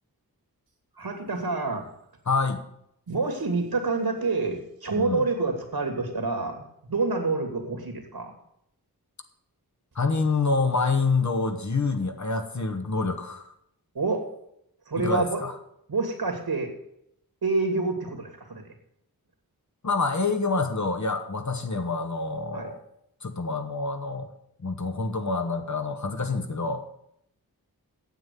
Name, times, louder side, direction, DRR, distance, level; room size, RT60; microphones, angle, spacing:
voice 1, 1.0-1.9 3.1-8.3 13.9-14.3 14.9-15.4 15.9-16.7 17.4-18.7 22.5-22.7, right 3 dB, 70° right, 5 dB, 2.7 m, -27 dB
voice 2, 2.3-2.6 5.0-5.2 9.9-13.5 15.0-15.5 19.8-22.8 23.2-24.3 24.6-26.8, left 3 dB, 50° left, 6 dB, 1.5 m, -27 dB
9.0 x 7.7 x 8.4 m, 0.74 s
wide cardioid pair, 65°, 38 cm